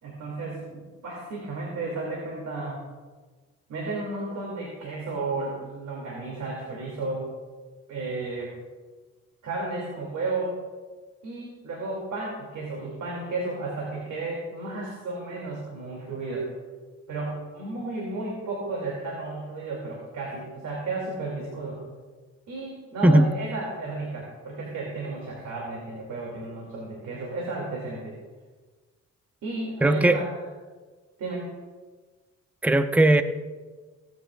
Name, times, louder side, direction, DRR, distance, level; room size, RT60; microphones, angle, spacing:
voice 1, 0.0-2.8 3.7-7.3 7.9-8.5 9.4-10.6 11.2-16.5 17.1-21.8 22.5-28.2 29.4-30.3 31.2-31.5, right 3 dB, 70° right, -3 dB, 3.0 m, -33 dB
voice 2, 29.8-30.2 32.6-33.2, right 1 dB, 5° right, 9 dB, 0.6 m, -18 dB
24.0 x 9.2 x 2.6 m, 1.4 s
cardioid pair, 90°, 30 cm